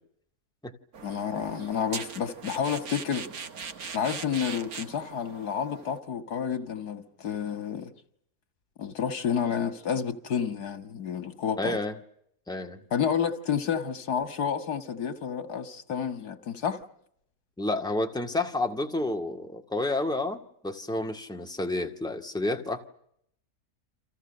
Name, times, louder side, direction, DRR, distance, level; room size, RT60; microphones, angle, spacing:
sound 1, 0.9-6.0, right 6 dB, 70° right, 1.9 m, -40 dB
voice 1, 1.0-3.3 3.9-7.9 8.8-11.8 12.9-16.8, left 7 dB, 85° left, 2.2 m, -30 dB
voice 2, 11.6-12.0 12.5-12.8 17.6-22.8, left 2 dB, 5° left, 1.9 m, -30 dB
30.0 x 26.0 x 6.6 m
omnidirectional pair, 1.6 m